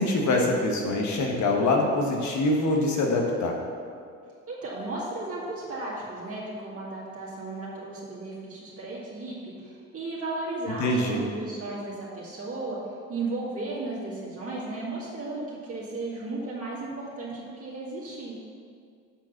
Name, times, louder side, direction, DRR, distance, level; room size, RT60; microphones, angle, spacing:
voice 1, 0.0-3.6 10.8-11.2, left 2 dB, 70° left, 1 dB, 1.4 m, -24 dB
voice 2, 4.5-12.8 13.1-18.3, right 2 dB, 50° right, -6 dB, 2.1 m, -35 dB
7.3 x 5.0 x 5.9 m, 2.2 s
cardioid pair, 90°, 30 cm